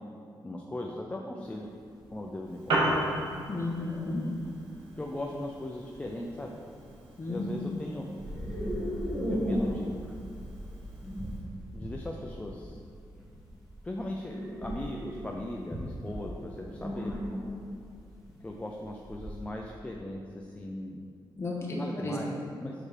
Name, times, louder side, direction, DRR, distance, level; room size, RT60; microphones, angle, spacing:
voice 1, 0.4-1.7 2.1-3.0 5.0-6.5 7.3-8.1 9.3-10.0 11.7-12.8 13.8-17.1 18.4-21.0 21.7-22.7, left 1 dB, 15° left, -1 dB, 0.4 m, -38 dB
sound 1, 1.4-1.5 2.0-2.2 2.9-3.0 3.9-4.5 5.9-6.0 6.3-6.7 8.2-19.4, equal, ahead, 1.3 m, -36 dB
Piano, 2.4-11.4, right 1 dB, 85° right, 1.5 m, -37 dB
voice 2, 3.5-4.2 7.2-7.5 21.4-22.3, left 2 dB, 30° left, -3 dB, 1.3 m, -33 dB
6.7 x 4.2 x 4.9 m, 2.4 s
wide cardioid pair, 150°, 8 cm